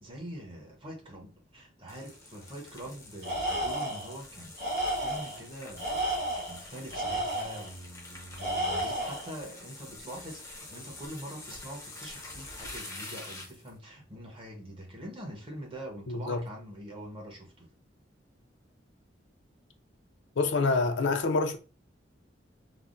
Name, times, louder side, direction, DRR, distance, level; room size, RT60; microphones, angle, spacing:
voice 1, 0.0-4.5 4.9-17.7, right 1 dB, 30° right, 0.9 m, -44 dB
sound 1, 1.9-13.7, left 2 dB, 15° left, 0.5 m, -47 dB
Tools, 3.2-4.1 4.6-5.4 5.8-7.7 8.4-9.3, right 1 dB, 55° right, 1.5 m, -32 dB
voice 2, 16.1-16.4 20.4-21.6, left 3 dB, 70° left, 0.4 m, -26 dB
3.3 x 2.1 x 2.4 m
head